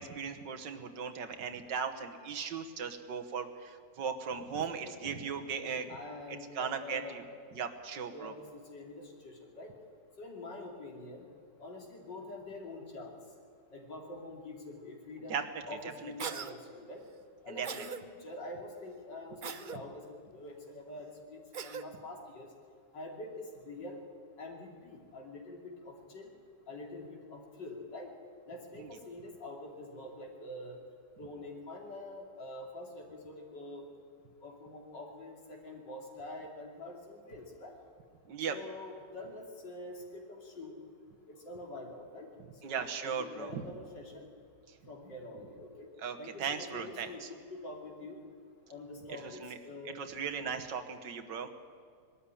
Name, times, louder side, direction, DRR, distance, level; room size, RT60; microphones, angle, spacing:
voice 1, 0.0-5.9 6.5-7.2 7.5-8.3 15.3-15.6 16.0-16.1 17.5-17.9 28.8-28.9 38.3-38.6 42.6-43.6 46.0-47.3 49.1-49.6 50.0-51.5, right 6 dB, 75° right, 7 dB, 1.9 m, -37 dB
voice 2, 5.6-7.3 8.1-9.7 10.2-11.2 11.6-13.2 13.7-15.3 15.7-17.0 17.4-22.5 22.9-24.0 24.4-26.3 26.7-28.1 28.5-30.8 31.2-33.9 34.4-37.8 38.5-40.8 41.3-42.3 42.6-44.3 44.9-45.9 46.2-48.2 48.7-50.0, left 2 dB, 75° left, 1 dB, 3.5 m, -46 dB
Cough, 16.2-16.5 17.6-18.0 19.4-19.8 21.5-21.9, right 6 dB, 60° right, 0.5 m, -40 dB
21.0 x 13.0 x 10.0 m, 2.3 s
omnidirectional pair, 1.9 m